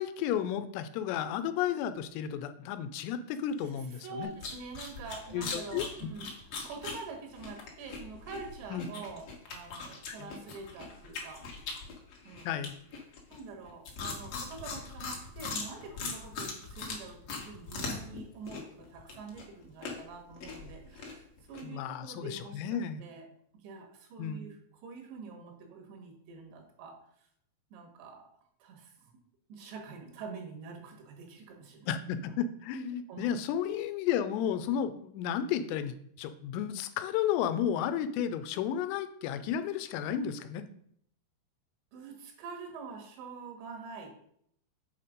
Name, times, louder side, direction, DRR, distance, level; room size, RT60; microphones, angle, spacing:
voice 1, 0.0-4.3 5.3-5.8 8.7-8.9 10.1-10.3 12.5-12.8 21.6-23.0 24.2-24.4 31.9-40.7, left 9 dB, 90° left, 11 dB, 2.8 m, -33 dB
voice 2, 4.0-6.3 6.6-11.5 12.3-12.5 13.3-23.3 23.5-27.3 27.7-28.2 28.6-29.1 29.5-31.9 33.1-33.3 41.9-44.1, right 4 dB, 90° right, 3 dB, 3.7 m, -46 dB
sound 1, 4.2-18.2 18.4-21.6, left 4 dB, 60° left, 1.7 m, -41 dB
7.5 x 4.2 x 5.1 m, 0.68 s
omnidirectional pair, 4.9 m